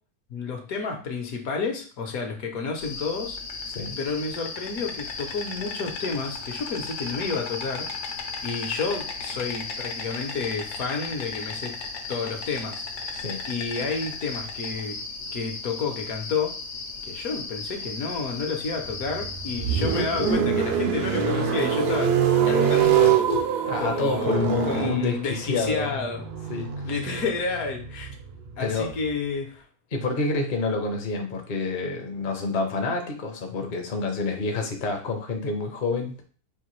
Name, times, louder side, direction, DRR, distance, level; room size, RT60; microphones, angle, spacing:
voice 1, 0.3-3.4 4.0-7.9 8.4-11.7 12.1-15.0 15.3-16.5 17.1-22.1 22.4-23.3 23.8-26.2 26.8-28.1 28.6-29.6, left 4 dB, 70° left, 3 dB, 1.2 m, -30 dB
Insect, 2.8-20.3, left 4 dB, 85° left, 1.2 m, -35 dB
voice 2, 3.7-4.0 13.1-13.4 23.7-25.9 26.5-26.9 28.6-28.9 29.9-36.2, left 3 dB, 45° left, 3 dB, 0.6 m, -28 dB
sound 1, 18.8-29.1, right 7 dB, 90° right, 0.4 m, -25 dB
sound 2, 21.0-27.0, right 8 dB, 70° right, 1.0 m, -32 dB
4.8 x 2.6 x 3.0 m, 0.41 s
omnidirectional pair, 1.6 m